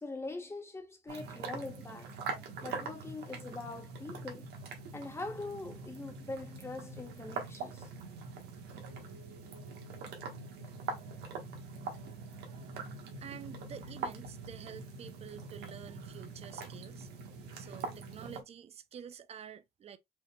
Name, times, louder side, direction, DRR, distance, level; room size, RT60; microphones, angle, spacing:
voice 1, 0.0-2.2 2.6-4.5 4.9-7.9, left 3 dB, 15° left, 1.3 m, -43 dB
sound 1, 1.1-18.4, right 4 dB, 75° right, 1.4 m, -43 dB
voice 2, 13.2-17.1 17.6-20.0, right 8 dB, 40° right, 0.6 m, -49 dB
5.2 x 3.3 x 2.3 m
cardioid pair, 110°, 17 cm